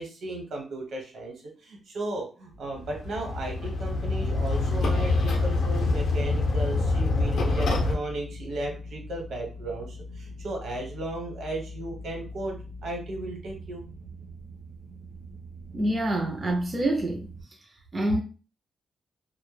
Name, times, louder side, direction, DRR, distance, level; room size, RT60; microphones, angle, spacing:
voice 1, 0.0-13.9, right 2 dB, 70° right, 0.9 m, -35 dB
sound 1, 2.5-17.4, left 1 dB, 85° right, 0.6 m, -43 dB
sound 2, 2.8-7.9, left 3 dB, 60° left, 0.5 m, -25 dB
voice 2, 15.7-17.3 17.9-18.2, right 1 dB, 20° right, 0.3 m, -26 dB
2.1 x 2.0 x 3.1 m
wide cardioid pair, 165°, 0 cm